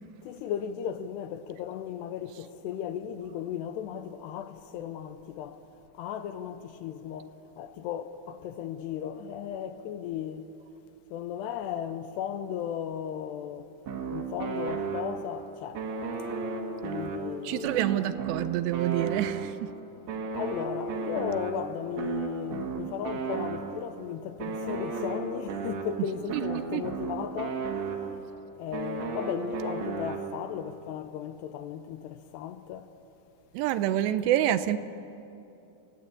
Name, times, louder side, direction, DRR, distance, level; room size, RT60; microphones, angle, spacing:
voice 1, 0.2-5.6 5.9-10.5 11.1-13.7 14.1-15.9 16.8-17.8 20.3-28.1 28.6-32.9, left 9 dB, 80° left, 2.6 m, -36 dB
sound 1, 13.9-15.4 15.7-19.7 20.1-24.0 24.4-28.3 28.7-30.6, right 5 dB, 65° right, 3.7 m, -34 dB
voice 2, 17.4-19.7 26.3-26.4 26.7-26.8 33.5-34.8, right 12 dB, 80° right, 2.7 m, -27 dB
29.0 x 16.5 x 8.4 m
omnidirectional pair, 5.3 m